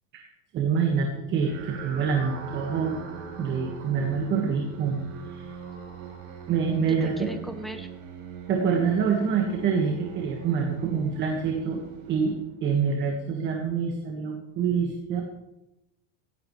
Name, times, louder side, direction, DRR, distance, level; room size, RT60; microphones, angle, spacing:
voice 1, 0.1-3.0 3.4-5.0 5.3-5.5 6.5-7.3 8.5-11.8 12.1-15.2, right 6 dB, 30° right, 1 dB, 1.7 m, -26 dB
sound 1, 1.4-12.8, right 5 dB, 65° right, 5.9 m, -41 dB
voice 2, 6.9-7.9, equal, ahead, 6 dB, 0.8 m, -37 dB
16.5 x 15.0 x 3.3 m, 0.93 s
supercardioid pair, 165°, 37 cm